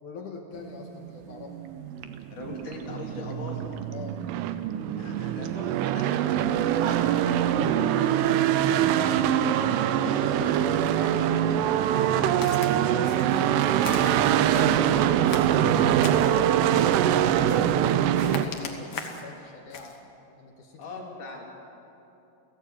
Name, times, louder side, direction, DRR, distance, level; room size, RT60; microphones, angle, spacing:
voice 1, 0.0-1.6 3.9-4.2 12.6-12.9 13.7-20.0 20.4-20.8, left 5 dB, 60° left, 2 dB, 2.2 m, -44 dB
sound 1, 0.7-18.5, right 10 dB, 85° right, 3.4 m, -24 dB
sound 2, 1.6-1.7 2.0-3.9 4.3-4.7 5.1-5.2 5.4-5.6 6.0-6.1 6.6-7.4, right 7 dB, 70° right, 2.8 m, -41 dB
voice 2, 2.3-3.7 4.9-9.2 9.5-13.4 20.8-21.5, left 3 dB, 45° left, -1 dB, 4.6 m, -41 dB
Walk footsteps, 12.4-12.7 13.0-13.4 13.8-14.8 15.2-16.4 16.7-17.1 17.5-17.8 18.1-19.3 19.7-20.0, left 5 dB, 85° left, 1.2 m, -39 dB
29.5 x 17.0 x 8.7 m, 3.0 s
omnidirectional pair, 5.5 m